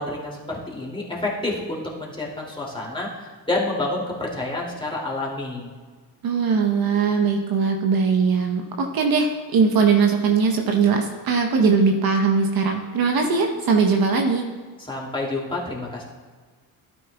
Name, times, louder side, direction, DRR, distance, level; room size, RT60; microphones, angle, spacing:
voice 1, 0.0-5.7 14.8-16.0, left 2 dB, 10° left, -3 dB, 2.6 m, -29 dB
voice 2, 6.2-14.4, right 5 dB, 50° right, 3 dB, 1.1 m, -20 dB
12.0 x 9.4 x 2.3 m, 1.5 s
supercardioid pair, 75°, 47 cm